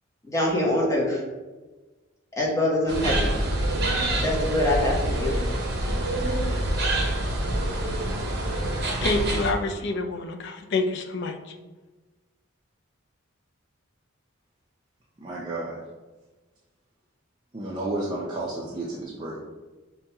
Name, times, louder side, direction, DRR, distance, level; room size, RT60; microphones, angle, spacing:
voice 1, 0.3-1.2 2.4-3.3 4.2-5.3, left 1 dB, 15° left, -3 dB, 0.7 m, -24 dB
sound 1, 2.9-9.5, right 1 dB, 50° right, 0.7 m, -26 dB
voice 2, 9.0-11.4, left 3 dB, 55° left, 4 dB, 0.4 m, -27 dB
voice 3, 15.2-15.8 17.5-19.4, right 2 dB, 20° right, -6 dB, 0.4 m, -32 dB
5.5 x 2.2 x 2.7 m, 1.2 s
head